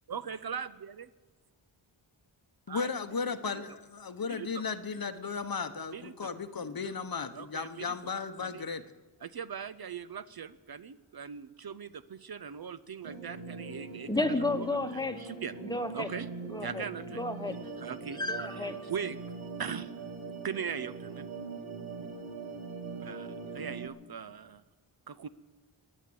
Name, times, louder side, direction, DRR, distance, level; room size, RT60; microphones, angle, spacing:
voice 1, 0.1-1.1 2.7-2.9 3.5-3.6 4.3-4.6 5.9-6.3 7.3-8.0 8.4-8.6 9.2-14.7 14.9-15.5 15.9-16.3 16.6-17.2 17.8-18.2 18.5-19.2 19.6-19.9 20.4-21.3 23.0-24.6 25.1-25.3, right 7 dB, 50° right, 14 dB, 0.5 m, -40 dB
voice 2, 2.7-8.8, left 5 dB, 45° left, 10 dB, 0.9 m, -35 dB
sound 1, 13.0-23.9, right 4 dB, 70° right, 2.0 m, -42 dB
voice 3, 14.1-15.2 15.6-16.1 16.4-16.8 17.1-17.6 18.1-18.8, left 2 dB, 10° left, 8 dB, 1.0 m, -32 dB
22.0 x 7.4 x 8.4 m, 1.3 s
wide cardioid pair, 125°, 48 cm